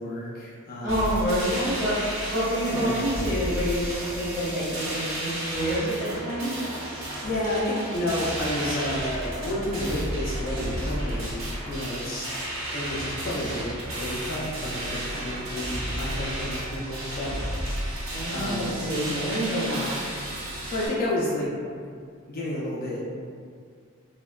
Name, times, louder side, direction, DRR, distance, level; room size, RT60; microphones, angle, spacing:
voice 1, 0.0-1.3 2.6-3.0 6.8-12.3 12.7-17.9 18.3-18.8 20.4-21.5 22.3-23.0, left 1 dB, 45° left, -6 dB, 0.4 m, -31 dB
voice 2, 0.8-2.0 2.3-3.8 4.1-6.5 18.1-20.0, equal, 20° left, -18 dB, 1.5 m, -27 dB
sound 1, 0.9-20.9, right 1 dB, 70° right, 0.8 m, -32 dB
3.2 x 2.0 x 2.2 m, 2.1 s
head